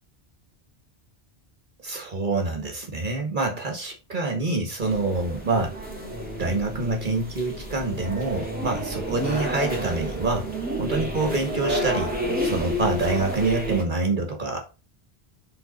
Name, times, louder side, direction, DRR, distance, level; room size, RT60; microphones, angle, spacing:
voice 1, 1.8-5.7 6.4-10.5 10.8-12.1 12.4-14.6, right 3 dB, 50° right, 1.7 m, -26 dB
sound 1, 4.8-13.8, equal, 10° right, 2.3 m, -30 dB
7.7 x 3.7 x 4.1 m
omnidirectional pair, 1.1 m